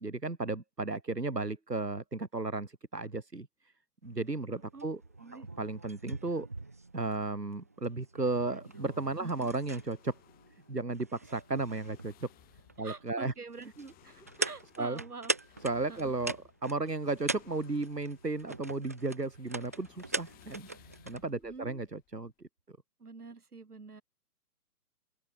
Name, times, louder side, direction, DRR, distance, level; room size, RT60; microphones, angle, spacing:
voice 1, 0.0-3.5 4.0-5.0 5.6-6.5 6.9-10.1 10.7-12.3 12.8-13.3 14.8-15.0 15.6-16.4 16.6-20.7 21.1-22.5, right 3 dB, 90° right, 1.9 m, -34 dB
sound 1, 4.0-21.3, right 3 dB, 10° right, 0.5 m, -42 dB
voice 2, 4.5-4.9 5.2-5.5 9.2-9.5 12.8-15.6 15.9-16.1 21.4-21.8 23.0-24.0, right 4 dB, 70° right, 6.1 m, -47 dB
sound 2, 8.6-22.5, left 16 dB, 20° left, 6.3 m, -62 dB
open air
figure-of-eight pair, 125°, 47 cm